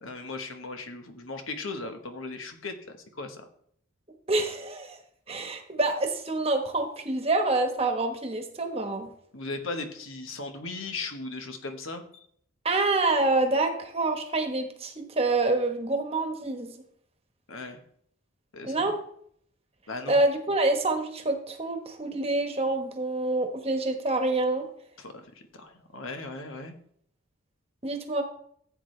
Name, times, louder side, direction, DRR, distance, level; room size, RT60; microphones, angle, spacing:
voice 1, 0.0-2.8 3.2-3.5 9.3-12.3 17.5-17.8 18.5-18.9 19.9-20.2 25.0-26.7, left 3 dB, 70° left, 6 dB, 1.3 m, -37 dB
voice 2, 4.3-5.0 5.3-9.1 12.6-16.7 18.6-19.0 20.1-24.7 27.8-28.2, right 2 dB, 30° right, 5 dB, 1.3 m, -27 dB
15.0 x 8.3 x 3.3 m, 0.65 s
head